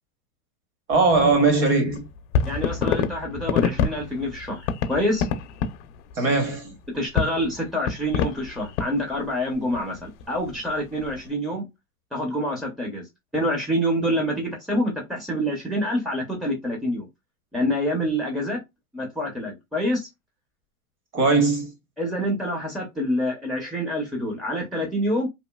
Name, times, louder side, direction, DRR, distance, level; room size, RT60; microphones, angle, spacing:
sound 1, 0.9-11.3, left 6 dB, 60° left, 0.6 m, -28 dB
voice 1, 0.9-2.0 6.2-6.7 21.1-21.7, right 3 dB, 30° right, 1.0 m, -20 dB
voice 2, 2.4-5.3 6.9-11.7 12.1-13.0 13.3-17.1 17.5-18.6 18.9-20.1 22.0-25.3, equal, ahead, 0.5 m, -26 dB
2.9 x 2.5 x 2.2 m
supercardioid pair, 135°, 41 cm